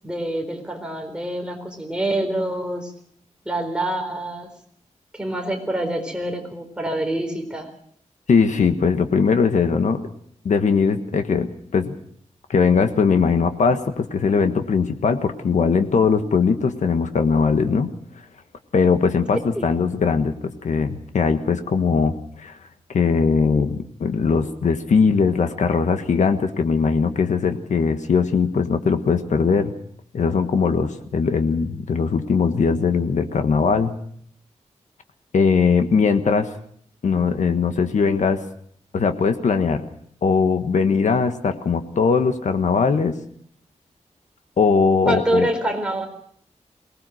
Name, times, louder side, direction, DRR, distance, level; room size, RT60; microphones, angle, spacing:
voice 1, 0.0-2.9 3.4-4.5 5.1-7.7 19.5-19.7 45.1-46.1, right 1 dB, 5° right, 3 dB, 4.3 m, -26 dB
voice 2, 8.3-10.0 10.4-12.0 12.5-17.9 18.7-22.5 22.9-29.7 30.1-33.9 35.3-36.5 37.0-38.4 38.9-39.8 40.2-43.2 44.6-45.5, left 5 dB, 90° left, 7 dB, 1.4 m, -20 dB
23.0 x 19.0 x 6.4 m, 0.63 s
wide cardioid pair, 130°, 12 cm